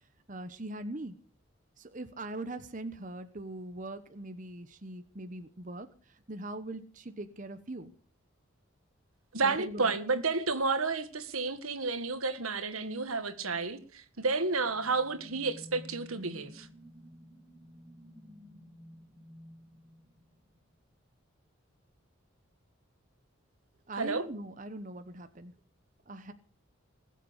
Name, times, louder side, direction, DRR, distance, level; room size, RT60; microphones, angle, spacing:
voice 1, 0.3-1.2 1.8-7.9 9.4-9.9 23.9-25.5 26.1-26.3, right 2 dB, 40° right, 1.0 m, -41 dB
voice 2, 9.3-16.7 24.0-24.3, right 4 dB, 90° right, 1.8 m, -31 dB
sound 1, 14.4-20.8, equal, 10° right, 3.7 m, -53 dB
20.0 x 7.6 x 8.1 m
head